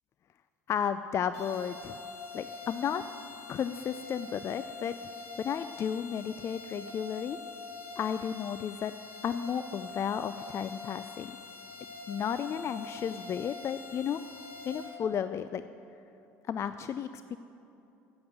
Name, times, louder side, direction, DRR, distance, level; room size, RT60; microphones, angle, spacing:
voice 1, 0.7-2.0 2.3-3.0 3.5-4.9 5.4-7.4 8.0-8.9 9.2-11.3 12.1-14.2 14.6-15.6 16.5-17.4, left 8 dB, 40° left, 12 dB, 0.3 m, -33 dB
sound 1, 1.3-14.8, left 3 dB, 80° left, 2.9 m, -44 dB
9.5 x 7.8 x 8.0 m, 2.7 s
hypercardioid pair, 75°, 7 cm